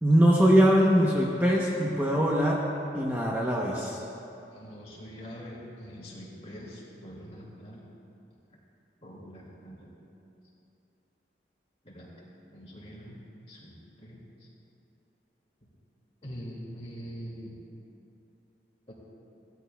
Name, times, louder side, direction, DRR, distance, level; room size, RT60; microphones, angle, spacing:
voice 1, 0.0-2.7 2.9-4.0, equal, 10° right, -3 dB, 0.7 m, -22 dB
voice 2, 4.5-7.8 9.0-9.9 11.8-12.1 12.5-13.2 13.5-14.2 16.2-17.6 18.9-19.0, equal, 35° left, -4 dB, 2.1 m, -44 dB
15.5 x 12.5 x 2.2 m, 2.8 s
head